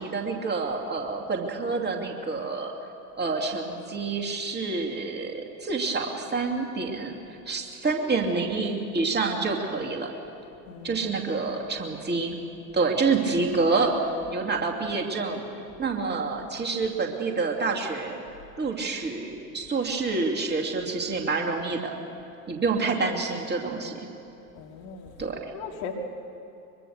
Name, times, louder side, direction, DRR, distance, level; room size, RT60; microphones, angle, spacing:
voice 1, 0.0-2.7 3.2-10.1 10.8-12.4 12.7-15.5 15.8-18.2 18.6-21.9 22.5-24.1 25.2-25.5, right 4 dB, 20° right, 1 dB, 2.6 m, -28 dB
voice 2, 10.7-11.0 24.5-25.1 25.5-25.9, left 7 dB, 55° left, 1 dB, 2.8 m, -38 dB
23.5 x 23.5 x 6.7 m, 2.8 s
figure-of-eight pair, 75°, 50 cm